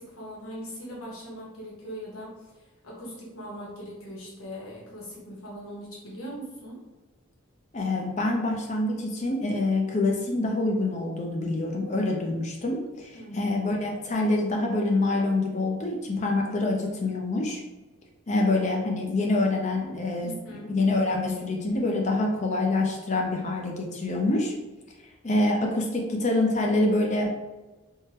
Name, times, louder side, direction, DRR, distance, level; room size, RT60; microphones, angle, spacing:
voice 1, 0.0-2.5 2.8-6.8 13.1-13.6 20.2-20.7, equal, 85° left, -4 dB, 1.1 m, -40 dB
voice 2, 7.7-17.6 18.3-24.5 25.2-27.3, left 2 dB, 35° left, 0 dB, 0.5 m, -26 dB
3.6 x 2.1 x 2.8 m, 1.1 s
head